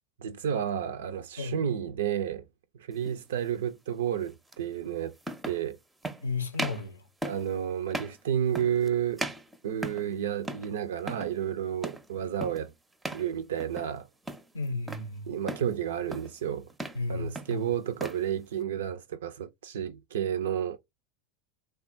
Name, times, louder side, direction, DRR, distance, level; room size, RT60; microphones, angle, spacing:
voice 1, 0.2-2.5 2.8-5.1 5.5-5.8 7.2-9.2 9.6-12.7 13.1-14.1 15.3-16.7 17.1-20.8, right 9 dB, 65° right, 0.3 m, -31 dB
sound 1, 3.0-3.2 4.5-4.6 5.2-5.6 6.0-6.2 6.5-6.9 7.2-7.5 7.9-8.2 8.5-8.9 9.2-10.1 10.4-10.7 11.0-11.3 11.8-12.1 12.4-12.7 13.0-13.3 13.6-14.0 14.3-15.1 15.5-15.7 16.1-16.4 16.7-17.0 17.3-18.2, right 1 dB, 10° right, 0.5 m, -37 dB
voice 2, 6.2-7.0 14.5-15.3 16.9-17.7, left 3 dB, 75° left, 0.6 m, -33 dB
3.4 x 2.3 x 2.5 m
figure-of-eight pair, 80°, 0 cm